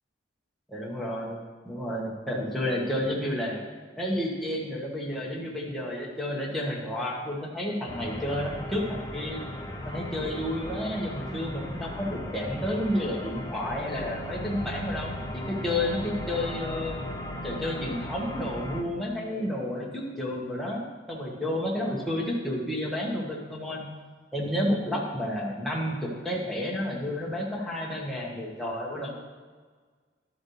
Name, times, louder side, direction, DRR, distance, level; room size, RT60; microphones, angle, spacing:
voice 1, 0.7-3.6 4.0-9.4 9.8-16.9 17.4-23.8 24.3-29.1, left 1 dB, ahead, -4 dB, 1.4 m, -31 dB
sound 1, 7.9-18.8, left 1 dB, 20° left, 0.7 m, -37 dB
11.5 x 7.4 x 3.2 m, 1.5 s
head